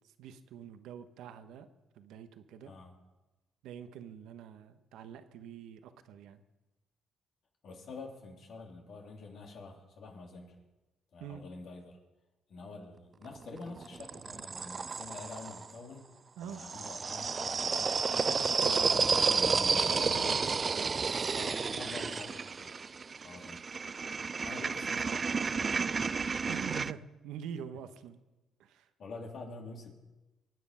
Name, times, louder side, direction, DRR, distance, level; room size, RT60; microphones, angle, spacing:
voice 1, 0.2-1.7 2.0-2.7 3.6-6.4 11.2-11.4 16.4-16.6 18.3-20.9 26.5-28.2 28.6-28.9, right 8 dB, 90° right, 9 dB, 1.1 m, -46 dB
voice 2, 7.6-10.5 11.1-12.0 12.5-16.1 16.4-20.3 21.3-22.7 23.2-23.6 24.4-26.5 29.0-29.9, left 3 dB, 65° left, 1 dB, 3.4 m, -47 dB
sound 1, 13.2-15.7 16.5-26.9, right 5 dB, 35° right, 0.4 m, -31 dB
24.0 x 9.6 x 5.7 m, 1.1 s
cardioid pair, 90°, 0 cm